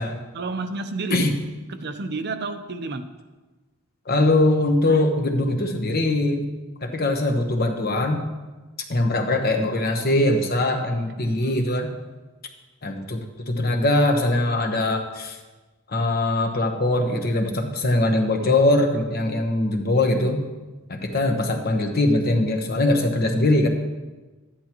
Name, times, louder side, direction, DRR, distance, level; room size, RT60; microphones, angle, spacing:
voice 1, 0.3-1.3 1.7-3.1 18.4-18.5, right 3 dB, 55° right, 8 dB, 0.7 m, -30 dB
voice 2, 4.1-6.5 6.8-8.3 8.9-11.9 12.8-13.2 13.5-15.4 15.9-20.4 20.9-23.7, left 2 dB, 50° left, 4 dB, 1.2 m, -21 dB
13.0 x 10.0 x 3.0 m, 1.2 s
head